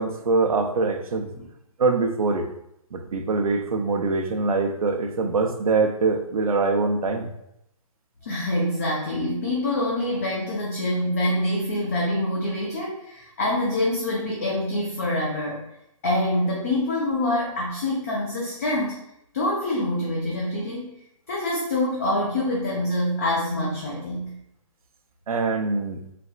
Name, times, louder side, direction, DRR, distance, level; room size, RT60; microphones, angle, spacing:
voice 1, 0.0-1.3 1.8-2.5 2.9-7.3 25.3-26.0, right 3 dB, 85° right, 5 dB, 0.7 m, -23 dB
voice 2, 8.3-15.7 16.0-19.0 19.3-20.9 21.3-24.3, left 1 dB, 25° left, -3 dB, 0.5 m, -25 dB
4.2 x 4.1 x 2.3 m, 0.80 s
hypercardioid pair, 170°, 18 cm